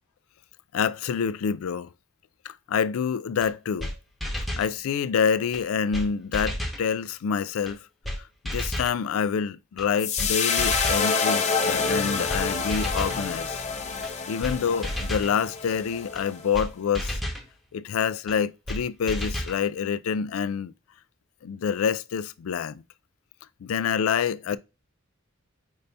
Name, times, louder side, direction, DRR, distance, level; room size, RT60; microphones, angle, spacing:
voice 1, 0.7-1.9 2.4-3.9 4.6-7.9 8.2-13.7 14.0-17.2 17.7-20.7 21.4-22.8 23.6-24.6, left 7 dB, 85° left, 0.3 m, -27 dB
sound 1, 3.4-3.5 3.8-3.9 4.2-4.7 5.5-5.6 5.9-6.1 6.3-6.8 7.7-7.8 8.0-8.2 8.4-8.9 9.8-9.9 10.2-10.3 10.6-11.1 11.9-12.0 12.3-12.4 12.7-13.2 14.0-14.1 14.4-14.6 14.8-15.3 16.2-16.3 16.5-16.7 16.9-17.4 18.3-18.4 18.7-18.8 19.1-19.6, equal, ahead, 1.0 m, -31 dB
sound 2, 10.0-16.4, left 4 dB, 35° left, 0.7 m, -27 dB
5.3 x 2.7 x 3.3 m
head